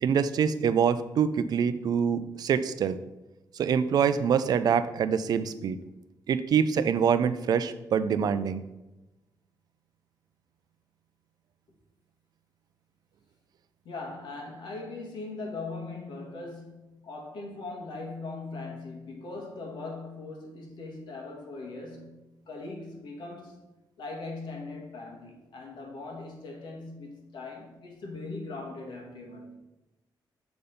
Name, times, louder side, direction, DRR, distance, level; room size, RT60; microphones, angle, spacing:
voice 1, 0.0-3.0 3.6-5.8 6.3-8.6, right 7 dB, 60° right, 0.4 m, -25 dB
voice 2, 13.8-22.2 22.5-23.6 24.0-29.6, left 3 dB, 75° left, 1.6 m, -40 dB
6.8 x 4.2 x 5.0 m
wide cardioid pair, 160°, 8 cm